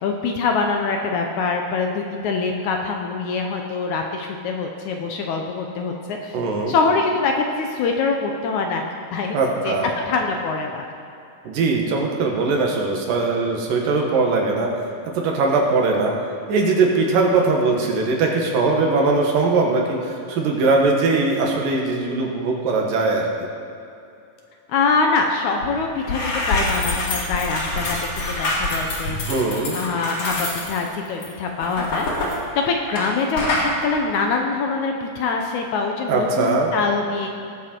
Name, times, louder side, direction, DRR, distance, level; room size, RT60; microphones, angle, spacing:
voice 1, 0.0-6.4 6.7-8.8 9.1-9.4 9.6-9.8 10.1-10.9 24.7-28.0 28.3-29.2 29.7-32.1 32.6-37.3, left 4 dB, 70° left, 2 dB, 2.0 m, -24 dB
voice 2, 6.3-6.7 9.3-9.9 11.4-14.7 15.1-16.1 16.5-23.5 29.3-29.8 36.1-36.7, right 3 dB, 75° right, 0 dB, 3.1 m, -20 dB
sound 1, 25.6-25.7 26.0-33.1 33.4-33.7, left 2 dB, 50° left, 2.8 m, -26 dB
19.5 x 7.4 x 4.5 m, 2.6 s
omnidirectional pair, 4.0 m